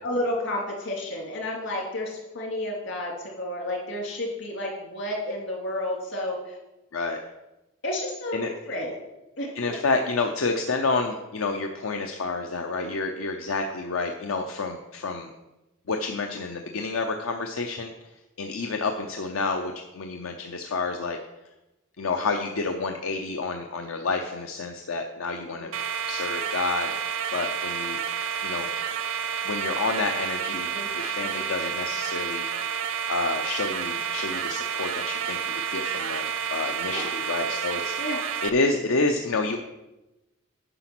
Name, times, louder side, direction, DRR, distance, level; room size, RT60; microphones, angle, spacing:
voice 1, 0.0-6.6 7.8-9.0 9.4-9.7 25.5-25.7 30.7-30.9 31.2-31.5 36.9-37.1 38.0-38.2, left 1 dB, 65° left, 0 dB, 2.6 m, -31 dB
voice 2, 9.5-15.3 15.9-17.9 18.4-21.2 22.0-25.7 26.1-26.9 27.3-28.0 28.4-28.7 29.4-32.5 33.1-38.0 38.4-39.6, left 3 dB, 85° left, 4 dB, 0.7 m, -29 dB
sound 1, 25.7-38.5, right 7 dB, 75° right, 0.7 m, -30 dB
10.0 x 5.8 x 6.0 m, 0.99 s
head